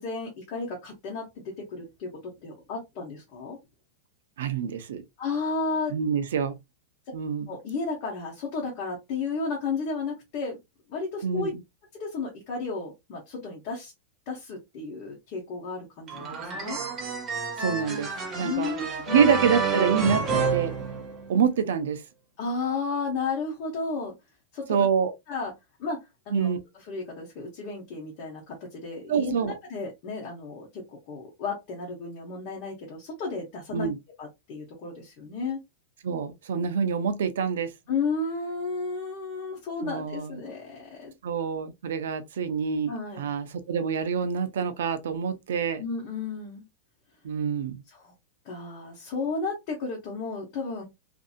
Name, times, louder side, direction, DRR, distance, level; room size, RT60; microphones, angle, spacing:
voice 1, 0.0-3.6 5.2-5.9 7.5-10.6 10.9-11.5 12.0-13.9 14.3-16.8 18.4-19.3 22.4-24.1 24.5-24.9 25.3-25.5 25.8-33.9 34.2-35.6 37.9-41.1 42.9-43.3 45.8-46.6 47.9-48.1 48.4-50.8, left 4 dB, 35° left, 0.8 m, -33 dB
voice 2, 4.4-5.0 5.9-6.6 7.1-7.5 11.2-11.6 17.6-18.7 19.1-20.7 21.3-22.0 24.7-25.1 26.3-26.6 29.1-29.5 33.7-34.0 36.0-37.7 39.8-40.4 41.2-45.8 47.2-47.8, right 6 dB, 75° right, 0.6 m, -26 dB
sound 1, 16.1-21.5, right 5 dB, 20° right, 0.6 m, -29 dB
2.6 x 2.6 x 2.4 m
supercardioid pair, 180°, 0 cm